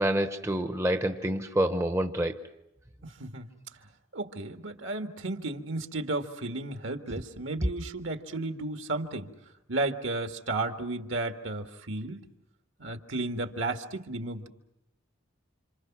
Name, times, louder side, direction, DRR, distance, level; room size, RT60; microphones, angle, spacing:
voice 1, 0.0-2.4, right 1 dB, 15° right, 7 dB, 0.9 m, -27 dB
voice 2, 3.0-3.5 4.1-9.3 9.7-12.2 12.8-14.5, right 2 dB, 65° right, 6 dB, 1.8 m, -33 dB
28.5 x 27.0 x 6.0 m, 0.86 s
head